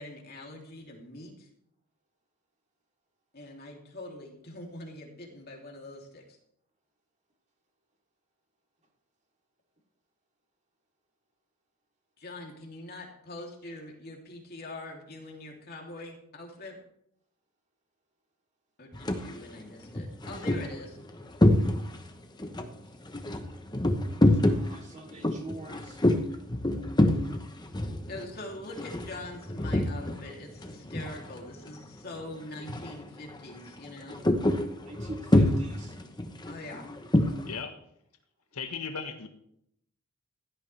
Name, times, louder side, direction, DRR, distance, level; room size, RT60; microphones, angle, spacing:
voice 1, 0.0-1.5 3.3-6.2 12.2-16.8 18.8-21.0 28.1-34.2 36.5-36.9, left 2 dB, 45° left, 0 dB, 3.1 m, -43 dB
sound 1, 18.9-19.3 19.8-22.1 22.4-30.3 30.6-31.7 32.0-32.2 32.6-33.0 33.3-37.5, left 1 dB, 20° left, 1.1 m, -27 dB
voice 2, 24.2-26.0 34.8-35.9, right 2 dB, 30° right, -1 dB, 3.3 m, -44 dB
voice 3, 37.5-37.8 38.5-39.3, left 5 dB, 90° left, 6 dB, 1.4 m, -36 dB
16.0 x 12.5 x 3.4 m, 0.73 s
head